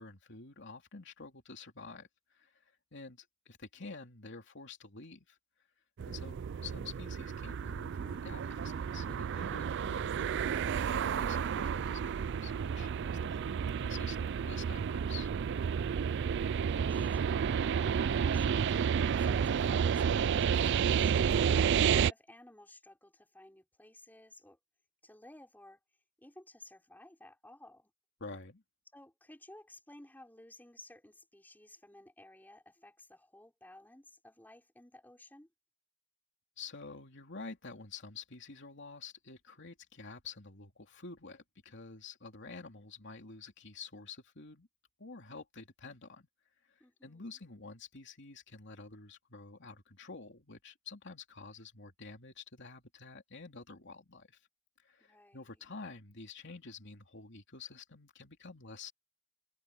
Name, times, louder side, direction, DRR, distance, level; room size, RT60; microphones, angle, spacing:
voice 1, 0.0-5.4 6.1-15.3 28.2-28.6 36.6-44.7 45.0-46.3 46.6-54.4 54.8-58.9, left 4 dB, 60° left, 3.1 m, -49 dB
sound 1, 6.0-22.1, right 7 dB, 55° right, 0.4 m, -31 dB
voice 2, 16.5-24.6 25.0-25.8 26.2-27.9 28.9-35.5 46.8-47.4 55.0-55.6, left 1 dB, 10° left, 4.5 m, -57 dB
head